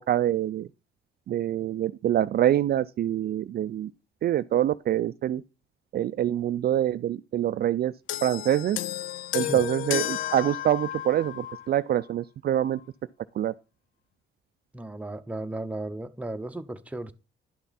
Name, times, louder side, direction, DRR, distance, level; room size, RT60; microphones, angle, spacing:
voice 1, 0.1-0.7 1.3-3.9 4.2-5.4 5.9-7.9 8.2-8.8 9.3-12.8 13.4-13.5, right 11 dB, 50° right, 0.4 m, -25 dB
sound 1, 8.1-11.7 12.6-12.7, left 13 dB, 85° left, 0.4 m, -32 dB
voice 2, 14.7-17.1, right 1 dB, 5° right, 0.8 m, -35 dB
11.0 x 5.8 x 4.1 m
cardioid pair, 90°, 20 cm